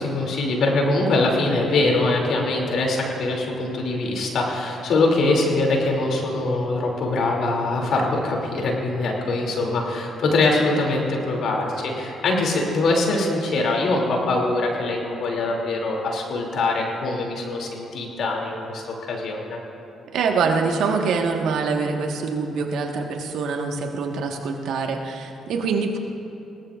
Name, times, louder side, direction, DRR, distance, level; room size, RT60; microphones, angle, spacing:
voice 1, 0.0-18.8 19.1-19.6, left 2 dB, 65° left, 0 dB, 2.8 m, -23 dB
voice 2, 20.1-26.0, right 4 dB, 75° right, 2 dB, 1.5 m, -24 dB
21.0 x 18.0 x 2.5 m, 2.8 s
supercardioid pair, 55°, 0 cm